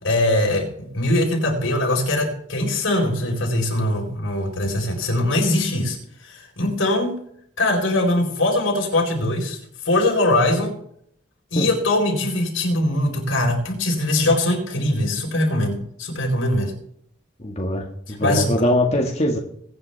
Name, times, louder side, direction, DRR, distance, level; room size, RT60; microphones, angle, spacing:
voice 1, 0.0-6.0 6.2-7.2 7.6-9.6 9.8-10.7 11.5-16.7 18.1-18.5, left 1 dB, 85° left, 1 dB, 4.3 m, -21 dB
voice 2, 17.4-19.4, left 1 dB, 35° left, 0 dB, 1.8 m, -22 dB
22.5 x 9.5 x 3.4 m, 0.67 s
head